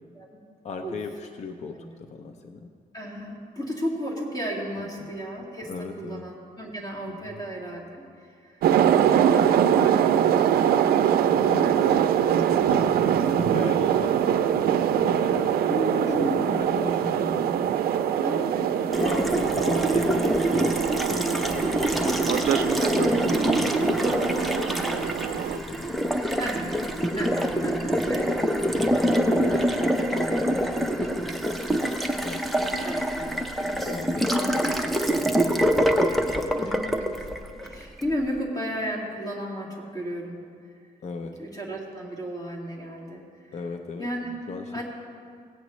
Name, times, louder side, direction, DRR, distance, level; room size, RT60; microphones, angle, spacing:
voice 1, 0.6-2.7 4.8-5.1 5.7-6.2 7.1-7.4 8.9-9.6 11.4-12.2 12.5-18.2 19.0-20.8 21.1-23.0 23.5-24.6 24.9-26.3 27.4-28.8 29.1-31.3 32.2-32.9 33.7-37.0 41.0-41.4 43.5-44.1 44.5-44.8, left 4 dB, 50° left, 5 dB, 0.6 m, -38 dB
voice 2, 2.9-5.7 6.0-8.6 8.9-10.5 15.7-16.7 18.2-19.6 23.3-23.7 26.1-26.8 27.1-29.8 32.8-34.5 36.5-36.9 37.6-40.4 41.4-43.2 44.0-44.3 44.7-44.8, equal, 25° left, -3 dB, 2.1 m, -34 dB
sound 1, 8.6-25.6, right 9 dB, 85° right, 0.4 m, -23 dB
Water tap faucet, 18.9-38.1, equal, ahead, 0.6 m, -25 dB
17.0 x 8.8 x 3.1 m, 2.2 s
cardioid pair, 135°, 15 cm